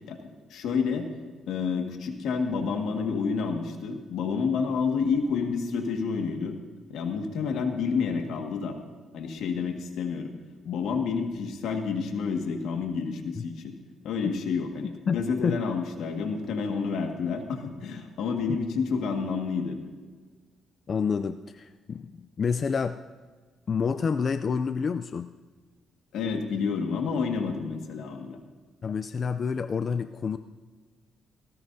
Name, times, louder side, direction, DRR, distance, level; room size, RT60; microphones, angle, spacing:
voice 1, 0.5-1.1 1.5-6.6 6.9-8.8 9.1-10.3 10.6-13.7 14.0-19.8 26.1-28.4, left 5 dB, 80° left, 3 dB, 1.8 m, -29 dB
voice 2, 14.8-15.6 20.9-23.0 23.7-25.3 28.8-30.4, left 6 dB, 45° left, 10 dB, 0.4 m, -28 dB
18.5 x 18.0 x 2.7 m, 1.4 s
cardioid pair, 90°, 0 cm